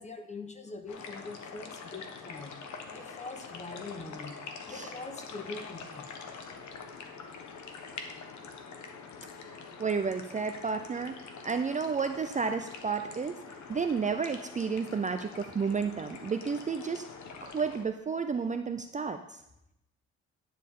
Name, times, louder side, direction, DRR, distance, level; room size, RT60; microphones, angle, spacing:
voice 1, 0.0-2.6 2.9-4.4 4.7-6.2, left 3 dB, 25° left, 7 dB, 1.2 m, -43 dB
sound 1, 0.9-17.8, left 5 dB, 70° left, 1.3 m, -45 dB
voice 2, 9.5-13.4 13.7-17.1 17.4-19.4, right 5 dB, 25° right, 7 dB, 0.5 m, -32 dB
11.0 x 7.3 x 3.7 m, 0.83 s
cardioid pair, 90°, 30 cm